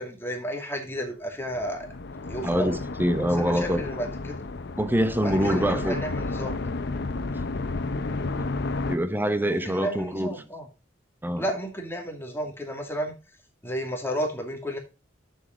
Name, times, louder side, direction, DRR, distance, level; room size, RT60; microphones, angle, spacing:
voice 1, 0.0-1.9 2.3-2.8 3.4-4.3 5.2-6.7 9.5-10.7 11.4-13.1 13.6-14.8, equal, 10° left, 2.3 m, -32 dB
sound 1, 1.4-9.0, left 3 dB, 60° left, 0.8 m, -32 dB
voice 2, 2.4-3.8 4.8-6.0 8.4-8.5 8.9-10.3 11.2-11.4, equal, 10° right, 0.8 m, -25 dB
7.3 x 6.9 x 5.1 m
head